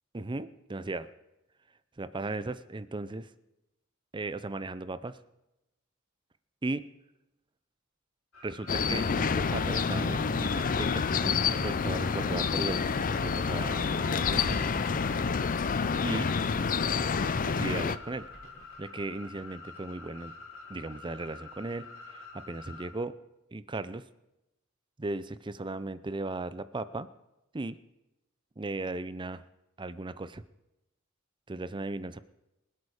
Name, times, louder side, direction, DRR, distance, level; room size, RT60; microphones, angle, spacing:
voice 1, 0.1-1.1 2.0-3.3 4.1-5.2 6.6-6.9 8.4-14.4 16.0-16.3 17.4-18.3 18.8-20.3 20.7-23.1 23.5-24.0 25.0-27.1 27.5-27.8 28.6-29.4 29.8-30.4 31.5-32.2, right 2 dB, 25° right, 15 dB, 0.6 m, -36 dB
sound 1, 8.3-22.9, left 3 dB, 65° left, 3.8 m, -48 dB
sound 2, 8.7-18.0, left 5 dB, 40° left, 0.5 m, -28 dB
sound 3, 14.2-16.7 17.0-18.7, equal, 50° right, 4.8 m, -43 dB
24.5 x 8.4 x 5.0 m, 0.92 s
head